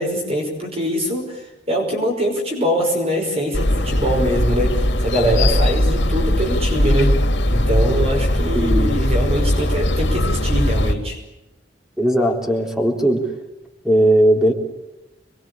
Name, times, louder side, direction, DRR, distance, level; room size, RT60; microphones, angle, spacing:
voice 1, 0.0-1.4 1.7-7.2 7.5-11.2, equal, 35° right, 1 dB, 5.5 m, -23 dB
sound 1, 3.5-10.9, left 1 dB, 85° left, 2.6 m, -19 dB
voice 2, 8.5-8.9 12.0-13.2 13.8-14.5, right 1 dB, 5° right, 1 dB, 3.7 m, -17 dB
26.5 x 22.0 x 8.6 m, 1.0 s
head